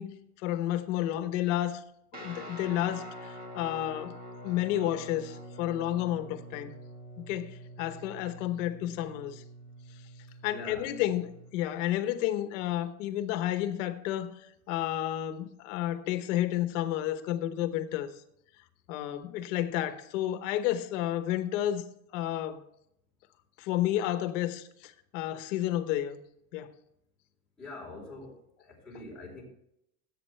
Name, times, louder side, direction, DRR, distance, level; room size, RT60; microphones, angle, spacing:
voice 1, 0.0-1.8 2.1-4.2 4.4-6.7 7.2-9.4 10.4-18.1 18.9-21.9 22.1-22.6 23.6-26.2 26.5-26.7, left 12 dB, 55° left, 1.1 m, -31 dB
Guitar, 2.1-11.5, equal, 20° right, 1.5 m, -46 dB
voice 2, 10.5-10.9 27.6-29.4, left 2 dB, ahead, 4.0 m, -44 dB
17.0 x 8.4 x 3.3 m
supercardioid pair, 175°, 43 cm